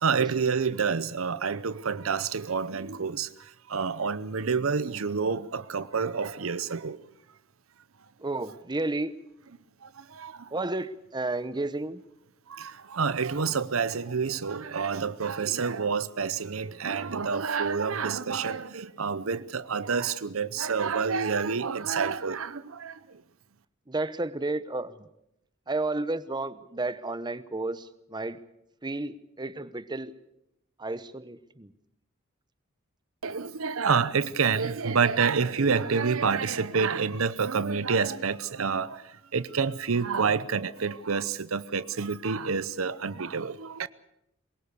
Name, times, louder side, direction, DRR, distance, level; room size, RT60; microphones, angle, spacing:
voice 1, 0.0-3.3 3.7-7.0 10.1-10.3 12.5-23.0 33.2-39.0 39.3-43.9, right 5 dB, 75° right, 0.7 m, -28 dB
voice 2, 8.2-9.1 10.5-12.0 23.9-25.1 25.7-28.4 28.8-30.1 30.8-31.7, right 2 dB, 20° right, 0.9 m, -32 dB
23.0 x 21.0 x 6.8 m
head